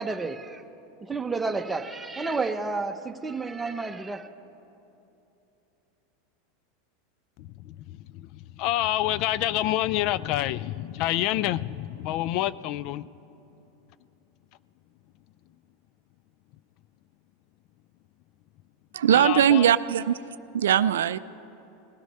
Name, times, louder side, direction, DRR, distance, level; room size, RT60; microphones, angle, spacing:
voice 1, 0.0-0.6 1.0-4.3, right 3 dB, 15° right, 0.8 m, -31 dB
voice 2, 7.4-13.1 19.1-19.7, left 14 dB, 55° left, 0.3 m, -28 dB
voice 3, 18.9-20.2 20.5-21.2, right 10 dB, 80° right, 0.3 m, -20 dB
19.5 x 13.0 x 5.5 m
hypercardioid pair, 95°, 0 cm